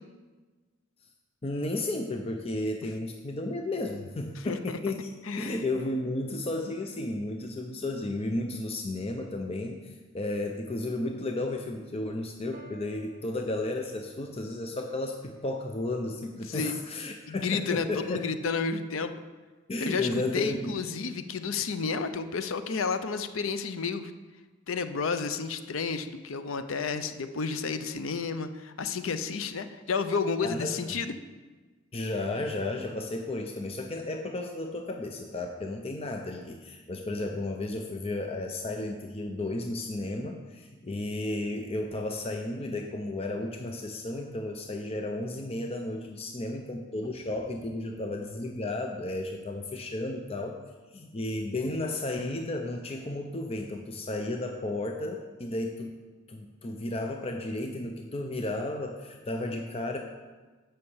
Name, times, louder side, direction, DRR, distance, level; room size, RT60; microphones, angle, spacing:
voice 1, 1.4-5.1 5.4-18.3 19.7-20.8 30.4-31.0 31.9-50.6 50.9-56.0 56.3-60.0, left 2 dB, 30° left, 3 dB, 0.6 m, -33 dB
voice 2, 4.4-4.8 5.3-5.6 16.5-16.8 17.3-19.1 19.9-24.1 24.7-31.1, left 5 dB, 80° left, 10 dB, 0.6 m, -31 dB
Piano, 12.5-14.5, right 4 dB, 45° right, 0.9 m, -55 dB
9.7 x 5.7 x 7.1 m, 1.3 s
head